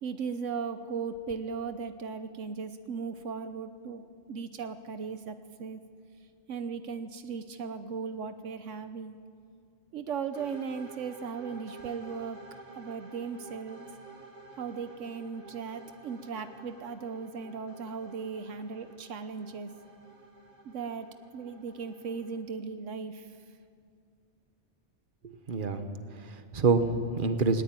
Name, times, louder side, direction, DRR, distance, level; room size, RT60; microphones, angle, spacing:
voice 1, 0.0-4.0 4.3-5.8 6.5-9.2 9.9-12.4 12.8-13.8 14.6-19.7 20.6-21.1 21.3-23.4, right 5 dB, 85° right, 10 dB, 1.2 m, -37 dB
sound 1, 10.3-22.4, right 3 dB, 60° right, 3.1 m, -51 dB
voice 2, 25.2-27.6, right 4 dB, 45° right, 8 dB, 1.3 m, -28 dB
19.5 x 19.0 x 9.0 m, 2.2 s
omnidirectional pair, 1.3 m